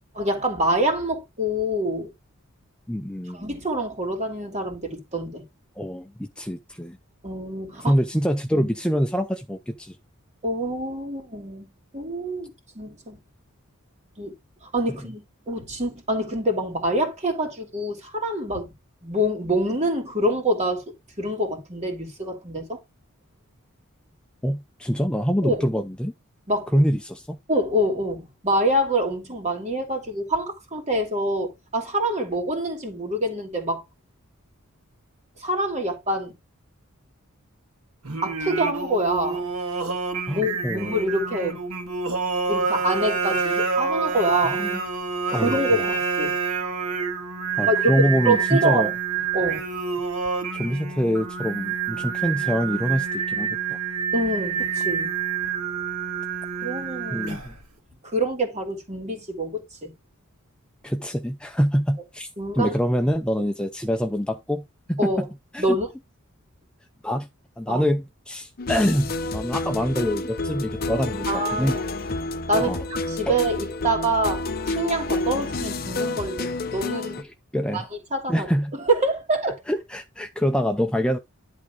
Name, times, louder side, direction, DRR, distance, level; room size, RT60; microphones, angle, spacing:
voice 1, 0.1-2.1 3.3-5.4 7.2-7.9 8.5-8.7 10.4-11.7 11.9-13.2 14.2-14.3 14.7-18.7 19.0-20.8 21.2-22.8 25.4-25.7 26.5-26.8 27.5-33.8 35.4-36.3 38.2-39.5 40.3-41.6 42.5-44.6 45.3-46.3 47.7-48.9 49.3-49.6 54.1-55.2 56.6-57.3 58.0-59.9 62.4-62.8 65.0-65.2 65.6-65.9 67.7-67.8 71.3-71.8 72.5-72.8 73.1-77.2 77.7-78.5 78.8-79.5, right 1 dB, 30° right, 2.6 m, -26 dB
voice 2, 2.9-3.5 5.8-7.0 7.8-10.0 24.4-26.1 26.7-27.4 40.3-41.0 44.4-44.8 45.3-45.9 47.6-48.9 50.5-53.8 57.1-57.6 60.8-62.3 62.5-65.3 65.5-65.8 67.0-67.3 67.6-71.8 72.5-72.8 73.3-73.4 77.2-77.9 78.3-78.8 79.5-81.2, equal, 5° left, 0.5 m, -25 dB
Singing, 38.0-57.6, right 6 dB, 85° right, 2.0 m, -27 dB
sound 1, 68.6-77.2, left 2 dB, 45° left, 0.8 m, -29 dB
11.0 x 3.7 x 4.9 m
head